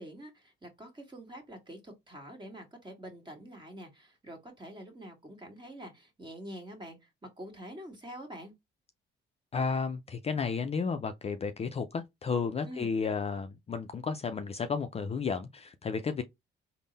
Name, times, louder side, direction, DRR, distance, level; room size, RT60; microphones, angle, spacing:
voice 1, 0.0-8.5 12.6-12.9, right 1 dB, 20° right, 1.5 m, -46 dB
voice 2, 9.5-16.2, left 5 dB, 30° left, 0.4 m, -32 dB
3.6 x 2.1 x 3.9 m
cardioid pair, 90°, 20 cm